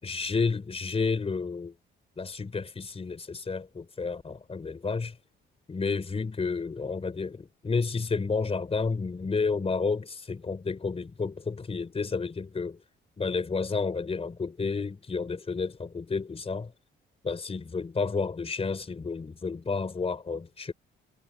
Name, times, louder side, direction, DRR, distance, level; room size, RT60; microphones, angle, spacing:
voice 1, 0.0-1.7 2.2-5.2 5.7-12.8 13.2-16.7 17.2-20.7, left 4 dB, 30° left, 4.0 m, -31 dB
cardioid pair, 90°, 20 cm